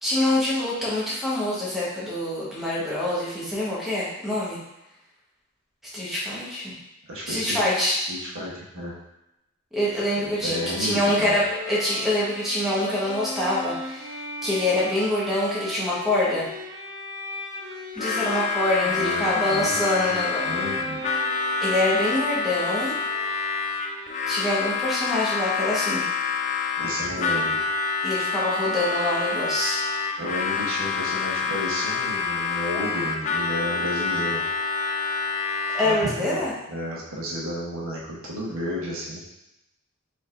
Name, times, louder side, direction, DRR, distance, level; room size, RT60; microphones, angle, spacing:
voice 1, 0.0-4.6 5.9-6.7 7.3-7.9 9.7-16.5 18.0-20.4 21.6-22.9 24.3-26.0 27.2-27.4 28.0-29.8 35.7-36.5, left 1 dB, ahead, -8 dB, 1.0 m, -25 dB
voice 2, 7.1-7.6 8.1-8.9 10.2-11.4 18.8-19.8 20.0-20.2 20.4-21.1 26.8-27.6 30.2-34.4 35.8-39.2, equal, 60° right, -5 dB, 1.1 m, -32 dB
Bowed string instrument, 10.3-24.8, equal, 20° right, 1.3 m, -38 dB
Harmonica, 17.9-36.2, left 5 dB, 35° left, 0.3 m, -27 dB
5.2 x 3.5 x 2.5 m, 0.89 s
head